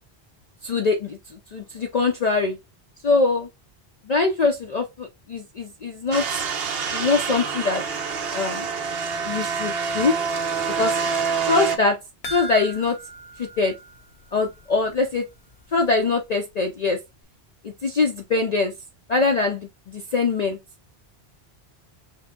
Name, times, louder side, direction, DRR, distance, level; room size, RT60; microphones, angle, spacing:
voice 1, 0.6-2.6 3.0-3.5 4.0-6.3 6.9-7.8 8.3-8.7 9.2-10.2 10.8-11.0 11.4-12.0 12.3-13.0 13.4-13.8 14.3-15.3 15.7-17.0 17.6-18.7 19.1-20.6, left 4 dB, 50° left, 0.6 m, -23 dB
sound 1, 6.1-11.8, right 5 dB, 65° right, 1.0 m, -26 dB
sound 2, 12.2-14.8 15.1-15.2 15.6-15.7, right 1 dB, 75° left, 1.2 m, -38 dB
5.7 x 2.1 x 3.6 m
omnidirectional pair, 1.1 m